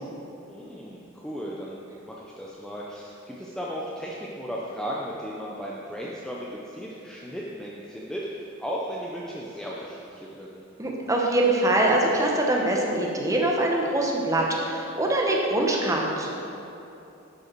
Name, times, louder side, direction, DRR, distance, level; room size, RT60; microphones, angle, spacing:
voice 1, 0.5-10.7, equal, 5° left, -5 dB, 0.5 m, -36 dB
voice 2, 10.8-16.3, right 1 dB, 15° right, -1 dB, 0.9 m, -23 dB
11.0 x 5.4 x 4.5 m, 2.8 s
head